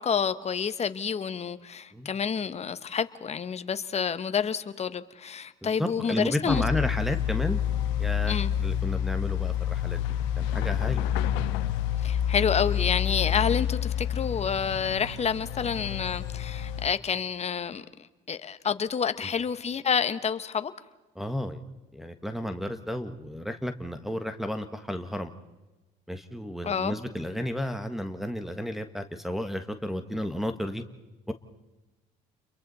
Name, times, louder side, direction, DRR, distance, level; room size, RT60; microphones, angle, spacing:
voice 1, 0.0-6.6 8.2-8.5 12.0-17.8 18.3-20.7 26.6-26.9, left 7 dB, 35° left, 1.2 m, -29 dB
voice 2, 5.6-7.6 8.0-10.0 10.4-11.1 21.1-21.6 21.9-25.3 26.1-30.8 31.3-31.4, equal, ahead, 1.4 m, -32 dB
sound 1, 6.5-16.9, left 10 dB, 90° left, 1.1 m, -28 dB
29.0 x 23.0 x 4.2 m
supercardioid pair, 90°, 19 cm